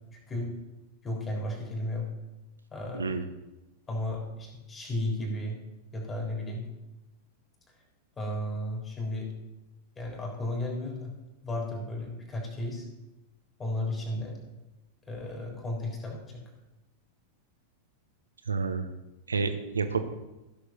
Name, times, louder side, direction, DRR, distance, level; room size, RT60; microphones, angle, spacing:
voice 1, 0.1-0.5 1.0-2.1 2.7-3.1 3.9-5.6 5.9-6.6 8.2-9.3 10.0-11.1 11.4-12.9 13.6-14.4 15.1-16.4, left 1 dB, 20° left, -1 dB, 3.6 m, -34 dB
voice 2, 18.5-18.9 19.3-20.0, right 5 dB, 75° right, 8 dB, 1.0 m, -29 dB
15.5 x 6.6 x 4.3 m, 1.0 s
figure-of-eight pair, 90°, 0 cm